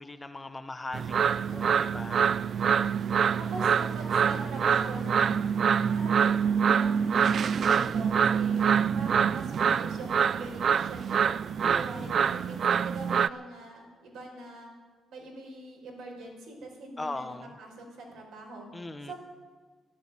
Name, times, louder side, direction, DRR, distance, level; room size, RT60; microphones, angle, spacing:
voice 1, 0.0-2.3 11.6-12.4 17.0-17.5 18.7-19.1, left 2 dB, 20° left, 9 dB, 1.0 m, -40 dB
sound 1, 0.9-13.3, right 7 dB, 55° right, 0.4 m, -25 dB
voice 2, 1.2-1.9 3.4-5.5 5.9-8.6 8.9-11.4 11.7-14.7 15.1-18.7 19.0-19.1, right 2 dB, 80° right, 0 dB, 4.9 m, -42 dB
12.5 x 11.5 x 9.1 m, 1.4 s
cardioid pair, 90°, 0 cm